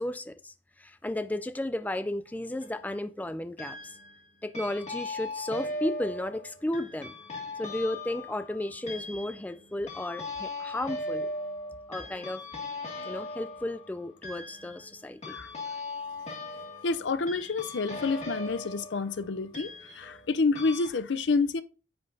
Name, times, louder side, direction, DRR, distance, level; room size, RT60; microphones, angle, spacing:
voice 1, 0.0-4.0 4.4-7.2 7.6-11.3 11.9-12.4 13.0-15.4, left 1 dB, 10° left, 0.3 m, -34 dB
sound 1, 2.3-2.8 3.6-4.2 4.5-20.3 20.5-20.9, left 2 dB, 35° left, 2.2 m, -39 dB
voice 2, 16.8-21.6, left 4 dB, 70° left, 0.5 m, -28 dB
9.7 x 7.6 x 2.7 m
head